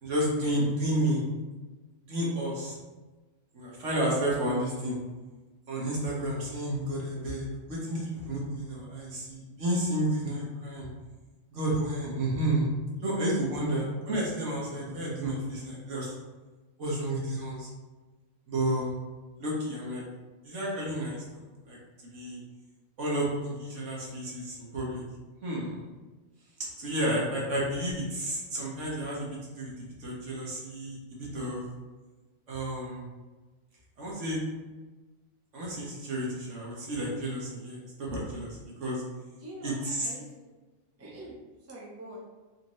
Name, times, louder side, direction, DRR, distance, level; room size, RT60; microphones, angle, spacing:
voice 1, 0.0-1.2 2.1-2.7 3.5-5.0 5.7-10.9 11.5-12.7 13.0-16.1 16.8-17.7 18.5-18.9 19.4-20.0 20.4-21.2 21.7-21.8 22.0-22.4 23.0-25.0 25.4-25.8 26.8-29.3 29.6-31.6 32.5-33.0 34.0-34.4 35.5-39.0 39.6-40.1, right 1 dB, 65° right, -4 dB, 1.4 m, -31 dB
voice 2, 39.4-40.4 41.0-41.4 41.7-42.2, equal, 20° right, -4 dB, 0.5 m, -44 dB
4.1 x 2.7 x 3.1 m, 1.2 s
omnidirectional pair, 1.4 m